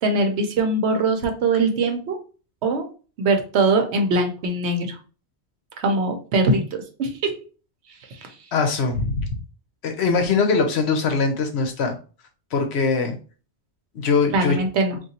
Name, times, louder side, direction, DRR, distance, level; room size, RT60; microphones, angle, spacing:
voice 1, 0.0-2.2 2.6-2.9 3.2-5.0 5.8-6.6 7.0-7.3 8.1-8.3 14.3-15.0, right 2 dB, 75° right, 5 dB, 1.0 m, -21 dB
voice 2, 8.5-9.4 9.8-12.0 12.5-13.2 13.9-14.6, left 4 dB, 70° left, 5 dB, 1.0 m, -22 dB
3.7 x 2.6 x 2.8 m, 0.36 s
omnidirectional pair, 1.2 m